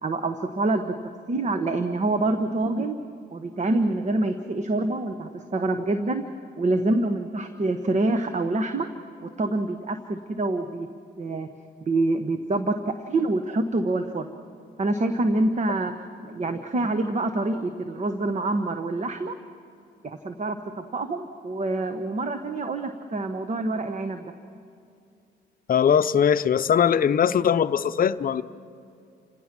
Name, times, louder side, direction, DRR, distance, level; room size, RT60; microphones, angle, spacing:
voice 1, 0.0-0.9 1.3-3.0 3.3-6.2 6.6-8.9 9.2-10.9 11.2-11.5 11.8-14.3 14.8-15.9 16.2-19.3 20.0-24.3, right 2 dB, 35° right, 7 dB, 1.1 m, -26 dB
voice 2, 25.7-28.4, left 8 dB, 45° left, 13 dB, 0.7 m, -20 dB
30.0 x 17.0 x 6.1 m, 2.5 s
cardioid pair, 90°, 20 cm